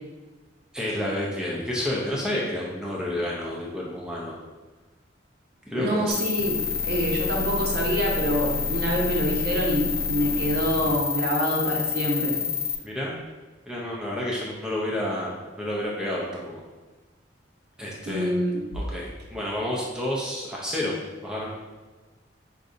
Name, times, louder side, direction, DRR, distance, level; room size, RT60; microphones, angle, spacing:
voice 1, 0.7-4.4 5.7-6.1 12.8-13.2 13.7-15.3 15.6-16.6 17.8-18.4 18.7-20.9 21.2-21.5, left 1 dB, 5° right, -4 dB, 0.5 m, -30 dB
voice 2, 5.7-12.4 18.1-18.6, equal, 55° right, -2 dB, 0.7 m, -26 dB
sound 1, 6.1-12.8, left 6 dB, 50° left, 0.5 m, -28 dB
4.9 x 2.6 x 2.5 m, 1.3 s
head